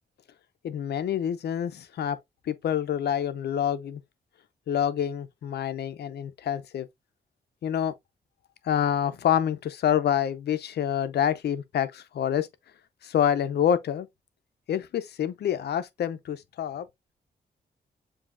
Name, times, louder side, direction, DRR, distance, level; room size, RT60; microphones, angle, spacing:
voice 1, 0.6-2.2 2.5-4.0 4.7-6.9 7.6-7.9 8.6-12.5 13.0-14.1 14.7-16.9, left 9 dB, 80° left, 0.6 m, -27 dB
7.1 x 2.8 x 2.5 m
cardioid pair, 105°, 17 cm